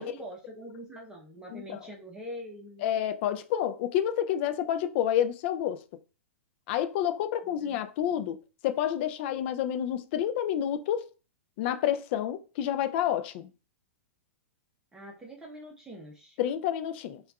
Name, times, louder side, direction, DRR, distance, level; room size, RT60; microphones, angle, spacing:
voice 1, 0.0-2.8 7.4-8.2 14.9-16.4, equal, 10° right, 0.7 m, -44 dB
voice 2, 2.8-5.8 6.7-8.4 8.6-11.1 11.6-13.5 16.4-17.2, left 10 dB, 50° left, 0.4 m, -29 dB
4.5 x 2.4 x 2.3 m
hypercardioid pair, 120°, 8 cm